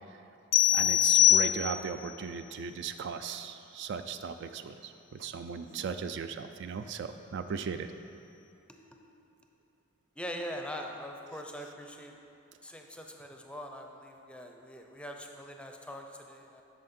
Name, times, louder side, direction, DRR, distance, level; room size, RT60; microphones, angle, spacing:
sound 1, 0.5-2.1, left 13 dB, 90° left, 0.4 m, -23 dB
voice 1, 0.7-7.9, right 6 dB, 60° right, 9 dB, 0.3 m, -37 dB
voice 2, 10.2-12.1 12.6-16.6, equal, 5° left, 2 dB, 0.5 m, -42 dB
8.8 x 6.3 x 4.2 m, 2.8 s
head